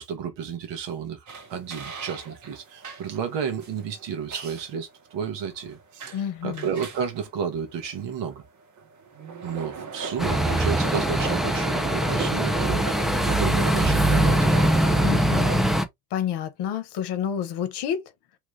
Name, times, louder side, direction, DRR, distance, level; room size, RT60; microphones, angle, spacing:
voice 1, 0.0-8.4 9.4-14.6, right 7 dB, 60° right, 1.3 m, -32 dB
sound 1, 1.3-15.6, right 5 dB, 40° right, 1.2 m, -37 dB
voice 2, 6.1-6.6 15.0-15.7 16.1-18.0, left 9 dB, 55° left, 1.0 m, -29 dB
sound 2, 10.2-15.8, right 1 dB, ahead, 0.5 m, -22 dB
3.2 x 2.3 x 3.2 m
supercardioid pair, 80°, 48 cm